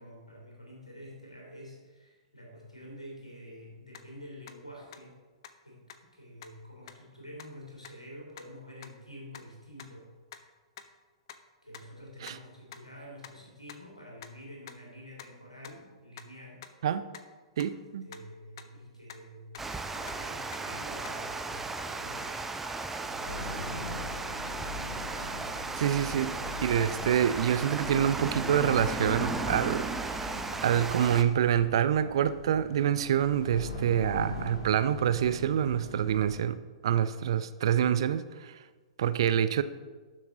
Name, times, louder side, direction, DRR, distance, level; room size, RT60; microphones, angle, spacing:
voice 1, 0.0-5.1 5.6-10.1 11.6-16.7 18.0-23.8, equal, 85° left, -2 dB, 3.5 m, -48 dB
sound 1, 3.9-4.0 4.5-4.6 4.9-5.0 5.4-5.5 5.9-6.0 6.4-6.5 6.9-7.0 7.4-7.5 7.8-7.9 8.3-8.4 8.8-8.9 9.3-9.4 9.8-9.9 10.3-10.4 10.8-10.9 11.3-11.4 11.7-11.8 12.3-12.4 12.7-12.8 13.2-13.3 13.7-13.8 14.2-14.3 14.7-14.8 15.2-15.3 15.6-15.7 16.2-16.3 16.6-16.7 17.1-17.2 17.6-17.7 18.1-18.2 18.6-18.7 19.1-19.2 19.5-19.7 20.0-20.2 20.5-20.6 21.0-21.1, left 10 dB, 50° left, 0.7 m, -46 dB
voice 2, 17.6-18.1 25.2-25.3 25.8-26.3 26.6-30.3 30.6-36.6 36.8-38.5 39.0-39.6, right 9 dB, 55° right, 14 dB, 0.5 m, -26 dB
Water, 19.6-31.2, right 3 dB, 10° right, 0.6 m, -35 dB
sound 2, 23.2-36.4, left 2 dB, 65° left, 2.8 m, -41 dB
12.0 x 7.2 x 4.0 m, 1.4 s
figure-of-eight pair, 110°, 3 cm